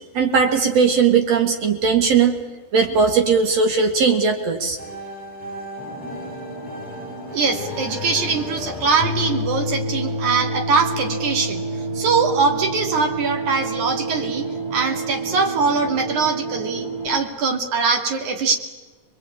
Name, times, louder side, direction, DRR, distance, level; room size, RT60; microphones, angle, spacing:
voice 1, 0.1-2.4 2.7-4.8, right 5 dB, 60° right, 5 dB, 3.1 m, -18 dB
sound 1, 4.8-10.5, left 1 dB, 10° right, 6.1 m, -36 dB
sound 2, 5.8-17.2, equal, 30° right, 6.6 m, -38 dB
voice 2, 7.3-11.6 11.9-14.5 14.7-18.6, right 4 dB, 80° right, 4 dB, 4.0 m, -22 dB
sound 3, 9.0-17.1, right 2 dB, 55° left, 1.9 m, -28 dB
25.0 x 21.5 x 8.7 m, 1.3 s
omnidirectional pair, 3.4 m